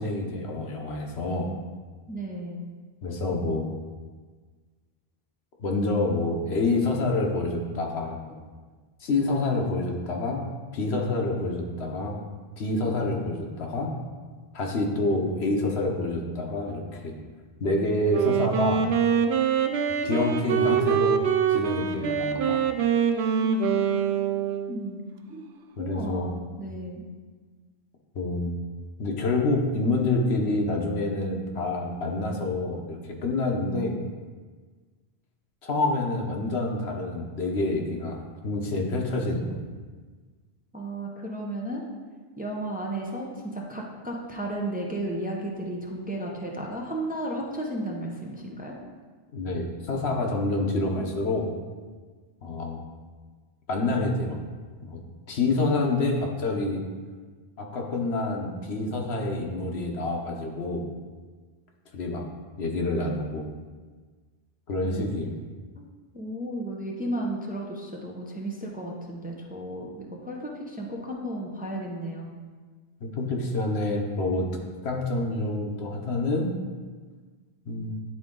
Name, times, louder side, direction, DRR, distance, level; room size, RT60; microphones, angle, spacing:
voice 1, 0.0-1.5 3.0-3.6 5.6-8.4 9.0-10.5 10.7-12.2 12.6-13.9 14.5-17.1 17.6-18.8 20.0-21.2 21.5-22.6 25.8-26.3 28.1-28.5 29.0-34.0 35.6-39.7 49.3-51.5 52.4-52.8 53.7-54.4 54.8-55.0 55.3-56.8 57.6-60.9 61.9-62.3 62.6-63.5 64.7-65.4 73.0-74.5 74.8-76.5 77.7-78.0, left 2 dB, 80° left, 1 dB, 1.2 m, -27 dB
voice 2, 2.1-2.7 23.4-24.0 24.7-25.5 25.8-27.0 40.7-41.8 42.4-48.7 64.8-65.1 65.8-65.9 66.1-72.3, right 1 dB, 10° right, -2 dB, 0.6 m, -34 dB
Wind instrument woodwind instrument, 18.1-24.8, right 7 dB, 80° right, 0.8 m, -24 dB
10.0 x 3.8 x 3.7 m, 1.4 s
omnidirectional pair, 1.1 m